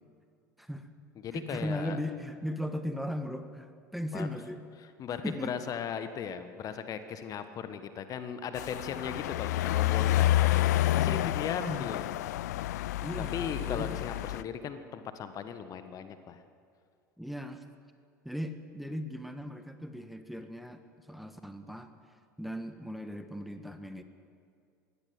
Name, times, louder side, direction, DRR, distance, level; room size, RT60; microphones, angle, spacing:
voice 1, 0.6-0.9 1.3-4.6 5.2-5.5 11.6-11.9 13.0-14.0 17.2-17.6 18.2-20.8 21.1-21.9 22.4-24.0, equal, ahead, 8 dB, 1.5 m, -37 dB
voice 2, 1.2-2.0 4.1-4.3 5.0-12.2 13.3-16.4, left 7 dB, 35° left, 10 dB, 1.4 m, -37 dB
sound 1, 8.6-14.4, left 14 dB, 65° left, 0.5 m, -29 dB
22.0 x 17.0 x 7.6 m, 2.3 s
figure-of-eight pair, 75°, 10 cm